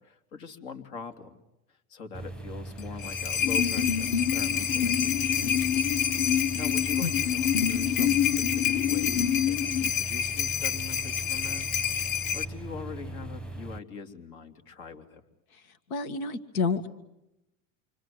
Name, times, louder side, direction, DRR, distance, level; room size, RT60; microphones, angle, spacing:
voice 1, 0.0-1.3 1.7-5.9 6.5-11.7 12.3-15.2, left 5 dB, 70° left, 6 dB, 3.3 m, -43 dB
sound 1, 2.1-13.8, right 2 dB, ahead, 0.9 m, -40 dB
sound 2, 2.8-12.4, left 8 dB, 55° left, 1.7 m, -29 dB
sound 3, 3.4-9.9, left 9 dB, 30° left, 1.1 m, -28 dB
voice 2, 15.9-16.9, left 4 dB, 90° left, 11 dB, 1.8 m, -29 dB
28.0 x 25.0 x 7.9 m, 0.88 s
supercardioid pair, 100°, 41 cm